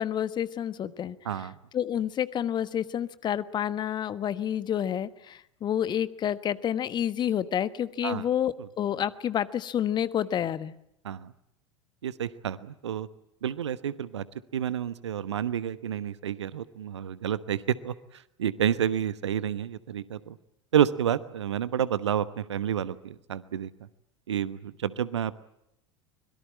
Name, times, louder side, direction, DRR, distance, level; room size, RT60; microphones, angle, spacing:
voice 1, 0.0-1.1 1.7-10.7, left 10 dB, 30° left, 14 dB, 1.2 m, -29 dB
voice 2, 1.2-1.6 8.0-8.3 8.6-8.7 11.0-11.3 12.0-13.1 13.4-14.3 14.5-20.4 20.7-23.7 24.3-25.3, right 9 dB, 70° right, 16 dB, 1.1 m, -29 dB
25.0 x 22.5 x 8.6 m, 0.79 s
figure-of-eight pair, 80°, 15 cm